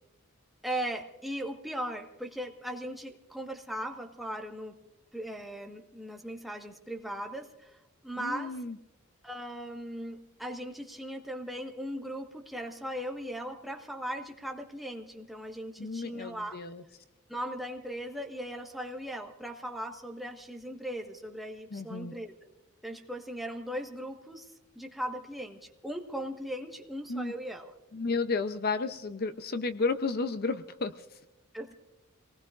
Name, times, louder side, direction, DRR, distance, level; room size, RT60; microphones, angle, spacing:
voice 1, 0.6-4.8 5.1-8.6 9.2-16.7 17.3-22.3 22.8-27.7 31.5-31.7, equal, ahead, 2 dB, 1.4 m, -38 dB
voice 2, 8.2-8.8 15.8-16.8 21.7-22.1 27.1-27.3 27.9-31.2, left 3 dB, 45° left, 10 dB, 0.6 m, -32 dB
28.0 x 19.5 x 2.5 m, 0.98 s
head